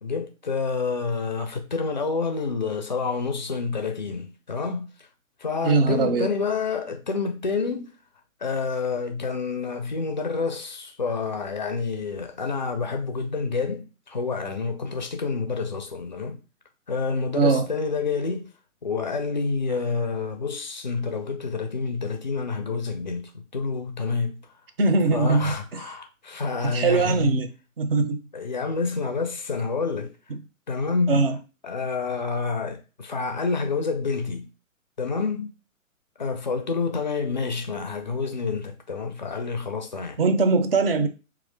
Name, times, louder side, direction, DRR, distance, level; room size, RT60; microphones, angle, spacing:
voice 1, 0.0-5.1 5.4-7.9 8.4-16.4 16.9-18.5 18.8-24.5 25.1-27.5 28.3-30.1 30.7-31.3 31.6-34.5 35.0-35.5 36.2-40.2, left 4 dB, 35° left, 0.4 m, -28 dB
voice 2, 5.6-6.3 17.3-17.7 24.8-25.8 26.7-27.5 27.8-28.3 31.1-31.4 40.2-41.1, right 3 dB, 45° right, 0.5 m, -21 dB
3.0 x 2.4 x 3.1 m
figure-of-eight pair, 130°, 41 cm